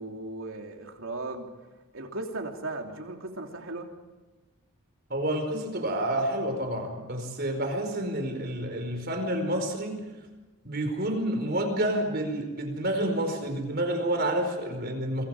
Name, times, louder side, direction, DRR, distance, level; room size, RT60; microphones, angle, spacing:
voice 1, 0.0-1.5 1.9-3.9, right 2 dB, 65° right, 2 dB, 3.2 m, -36 dB
voice 2, 5.1-10.1 10.6-15.2, right 1 dB, 45° right, 5 dB, 4.8 m, -29 dB
29.0 x 24.0 x 5.0 m, 1.2 s
head